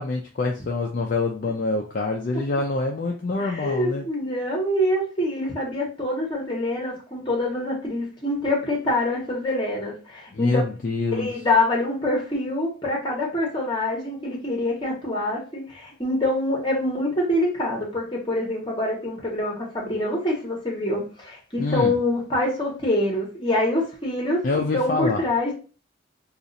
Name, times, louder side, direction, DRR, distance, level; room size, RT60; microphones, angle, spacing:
voice 1, 0.0-4.1 10.3-11.3 21.6-21.9 24.4-25.2, left 3 dB, 45° left, 1 dB, 0.4 m, -25 dB
voice 2, 3.4-10.6 11.1-24.4 24.7-25.5, left 1 dB, 25° left, -1 dB, 1.2 m, -25 dB
2.6 x 2.4 x 3.9 m, 0.36 s
head